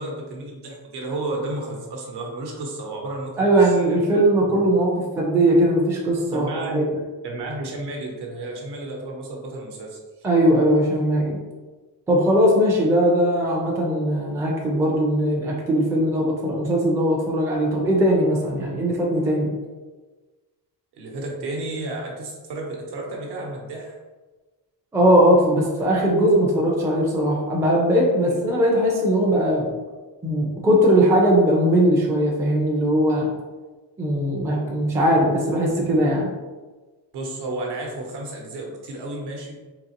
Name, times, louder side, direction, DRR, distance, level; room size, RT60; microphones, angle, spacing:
voice 1, 0.0-3.7 4.4-4.5 6.3-6.8 7.2-10.2 20.9-24.0 28.2-28.3 37.1-39.6, right 2 dB, 70° right, 0 dB, 0.9 m, -32 dB
voice 2, 3.4-7.0 10.2-11.4 12.1-19.5 24.9-29.7 30.2-33.3 34.0-36.3, right 1 dB, 5° right, -2 dB, 0.4 m, -19 dB
3.8 x 2.8 x 2.9 m, 1.3 s
cardioid pair, 170°, 41 cm